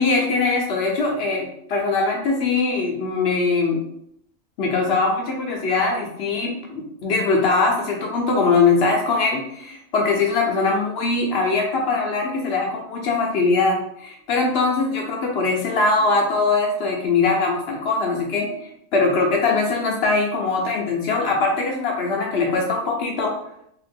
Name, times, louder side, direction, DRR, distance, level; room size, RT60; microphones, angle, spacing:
voice 1, 0.0-3.8 4.6-23.3, left 3 dB, 65° left, 0 dB, 0.7 m, -21 dB
2.7 x 2.4 x 3.3 m, 0.74 s
omnidirectional pair, 1.4 m